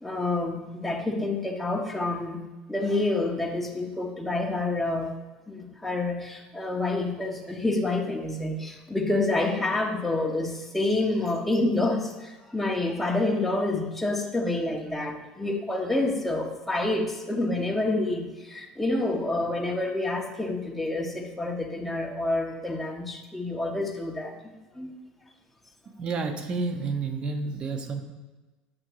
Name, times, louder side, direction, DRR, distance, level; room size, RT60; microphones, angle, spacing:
voice 1, 0.0-2.4 2.7-5.1 5.5-24.9, left 2 dB, 5° left, 0 dB, 0.8 m, -28 dB
voice 2, 26.0-28.0, right 4 dB, 35° right, 5 dB, 0.9 m, -30 dB
7.8 x 2.8 x 6.1 m, 1.2 s
cardioid pair, 140°, 3 cm